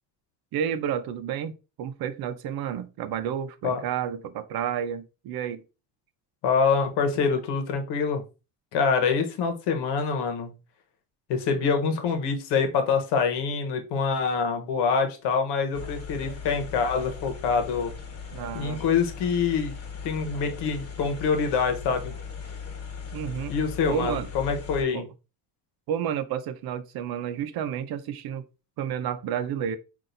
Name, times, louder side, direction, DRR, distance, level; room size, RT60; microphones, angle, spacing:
voice 1, 0.5-1.5 1.8-5.6 18.3-18.8 23.1-23.5 23.9-24.3 24.9-25.1 25.9-28.4 28.8-29.8, right 9 dB, 65° right, 0.7 m, -30 dB
voice 2, 6.4-8.2 8.7-10.5 11.3-17.9 18.5-19.7 20.0-22.1 23.5-25.0, left 5 dB, 80° left, 1.1 m, -25 dB
sound 1, 15.7-24.8, left 6 dB, 35° left, 1.3 m, -38 dB
5.6 x 2.6 x 2.6 m
cardioid pair, 120°, 40 cm